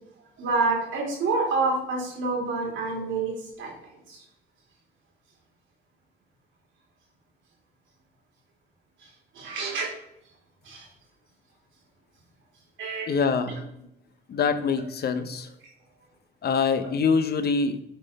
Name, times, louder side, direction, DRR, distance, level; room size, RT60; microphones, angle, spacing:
voice 1, 0.4-3.7 4.1-4.2 9.0-9.1 9.3-9.9 10.6-10.9 12.8-13.1, right 3 dB, 80° right, -2 dB, 2.9 m, -27 dB
voice 2, 13.1-13.6 14.3-15.5 16.4-17.8, left 5 dB, 55° left, 9 dB, 0.8 m, -24 dB
8.7 x 3.8 x 4.2 m, 0.82 s
cardioid pair, 90°, 20 cm